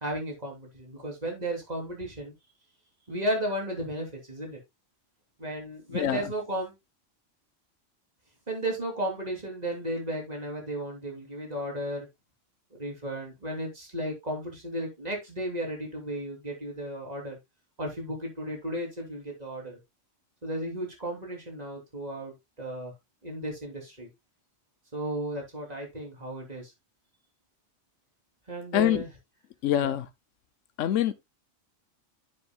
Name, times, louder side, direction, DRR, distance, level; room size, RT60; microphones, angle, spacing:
voice 1, 0.0-2.3 3.1-4.6 5.4-6.7 8.5-12.1 12.7-17.4 17.8-19.8 20.4-22.9 23.2-24.1 24.9-26.7 28.5-29.1 29.8-29.9, right 1 dB, 30° right, 3.4 m, -34 dB
voice 2, 28.7-29.0 29.6-30.1 30.8-31.1, left 11 dB, 80° left, 1.1 m, -24 dB
10.0 x 7.5 x 2.3 m
omnidirectional pair, 1.3 m